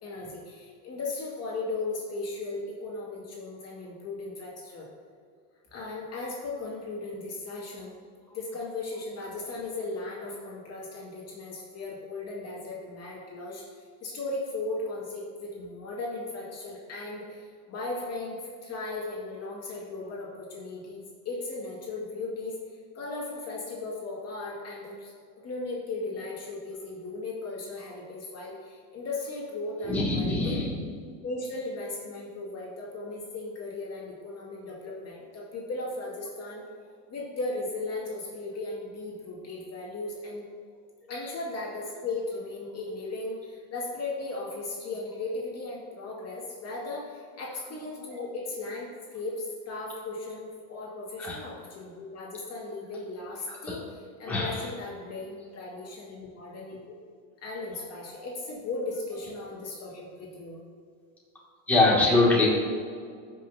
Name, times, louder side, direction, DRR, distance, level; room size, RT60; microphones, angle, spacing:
voice 1, 0.0-4.9 5.7-7.9 8.3-25.1 25.4-30.6 31.2-36.6 37.1-40.5 41.1-56.8 57.4-60.6, left 2 dB, 35° left, -5 dB, 2.3 m, -37 dB
voice 2, 29.8-30.9 47.7-47.8 51.2-51.4 53.5-53.8 54.3-54.8 57.7-57.9 58.2-58.3 59.1-59.3 61.7-62.5, left 2 dB, 5° left, -7 dB, 2.4 m, -25 dB
16.0 x 6.2 x 2.8 m, 2.1 s
supercardioid pair, 135°, 45 cm